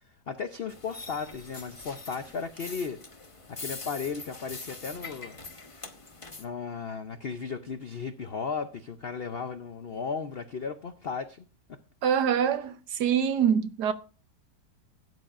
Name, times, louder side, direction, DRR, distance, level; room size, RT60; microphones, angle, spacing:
voice 1, 0.3-3.0 3.5-5.4 6.4-11.4, left 5 dB, 75° left, 0.5 m, -35 dB
sound 1, 0.7-6.4, left 3 dB, 25° left, 0.7 m, -43 dB
voice 2, 12.0-13.9, right 8 dB, 70° right, 1.3 m, -25 dB
16.0 x 9.6 x 2.5 m
omnidirectional pair, 2.0 m